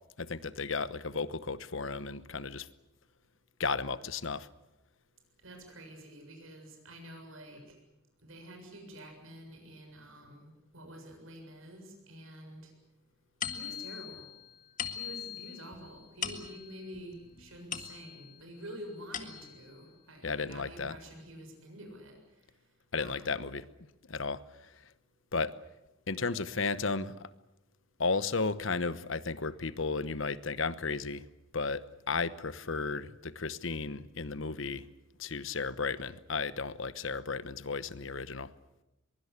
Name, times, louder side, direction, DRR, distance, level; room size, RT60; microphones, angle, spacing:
voice 1, 0.2-2.7 3.6-4.5 20.2-21.0 22.9-23.7 24.1-24.9 25.3-25.5 26.1-27.3 28.0-31.3 31.5-34.9 35.2-38.5, left 4 dB, 70° left, 15 dB, 1.1 m, -34 dB
voice 2, 5.4-7.6 8.2-12.7 13.5-14.3 14.9-22.2 23.0-23.5, right 1 dB, 80° right, 4 dB, 7.2 m, -48 dB
sound 1, 13.4-18.4 18.8-19.7, left 8 dB, 40° left, 1.9 m, -41 dB
23.0 x 23.0 x 8.3 m, 0.93 s
head